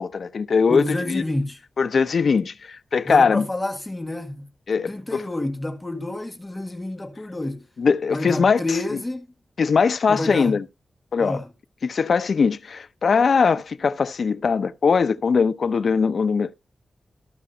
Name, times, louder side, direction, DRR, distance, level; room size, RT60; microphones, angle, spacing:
voice 1, 0.0-1.2 1.8-3.5 4.7-5.2 7.8-8.8 9.6-10.6 11.1-11.4 11.8-16.5, left 5 dB, 65° left, 0.8 m, -21 dB
voice 2, 0.7-1.6 3.0-4.5 4.9-7.6 8.1-9.3 10.1-10.6 11.2-11.5, left 2 dB, 15° left, 1.6 m, -29 dB
14.0 x 4.9 x 5.5 m
wide cardioid pair, 125°, 0 cm